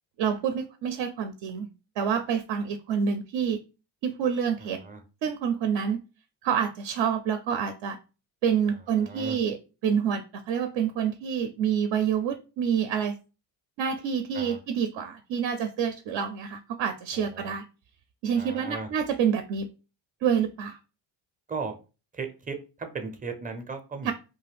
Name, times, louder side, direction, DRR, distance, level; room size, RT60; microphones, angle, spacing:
voice 1, 0.2-1.7 2.0-3.6 4.0-4.8 5.2-6.0 6.4-8.0 8.4-9.6 9.8-13.1 13.8-17.6 18.2-19.7 20.2-20.8 24.0-24.1, right 7 dB, 60° right, 0.5 m, -27 dB
voice 2, 4.6-5.0 8.7-9.4 14.3-14.6 17.1-17.5 18.3-18.9 21.5-21.7 22.1-24.1, right 4 dB, 15° right, 0.5 m, -37 dB
2.6 x 2.2 x 3.3 m
supercardioid pair, 80°, 50 cm